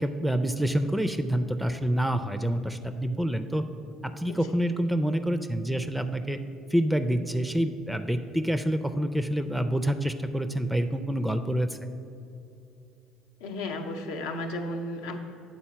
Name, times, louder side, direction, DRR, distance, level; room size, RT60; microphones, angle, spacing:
voice 1, 0.0-3.6 4.0-6.4 6.7-11.8, right 1 dB, 5° right, 9 dB, 0.4 m, -27 dB
voice 2, 13.4-15.2, left 1 dB, 80° left, 3 dB, 0.6 m, -33 dB
7.8 x 4.1 x 5.7 m, 2.8 s
hypercardioid pair, 65°, 0 cm